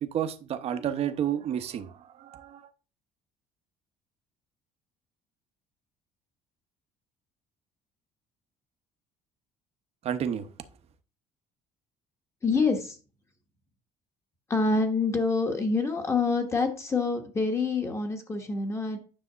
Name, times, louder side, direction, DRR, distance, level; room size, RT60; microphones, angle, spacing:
voice 1, 0.0-2.6 10.0-10.5, right 9 dB, 45° right, 10 dB, 0.9 m, -31 dB
voice 2, 12.4-13.0 14.5-19.0, left 4 dB, 20° left, 4 dB, 1.2 m, -26 dB
9.7 x 3.5 x 6.7 m, 0.36 s
cardioid pair, 160°, 15 cm